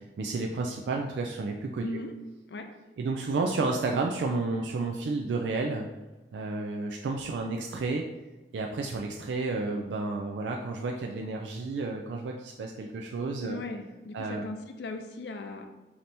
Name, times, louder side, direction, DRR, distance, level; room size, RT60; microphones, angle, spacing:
voice 1, 0.2-2.0 3.0-5.9 6.3-8.1 8.5-13.6 14.1-14.4, right 3 dB, 85° right, 2 dB, 0.3 m, -31 dB
voice 2, 1.8-2.1 2.5-2.7 13.4-15.6, left 2 dB, 70° left, 5 dB, 0.5 m, -38 dB
4.1 x 2.8 x 3.3 m, 1.1 s
head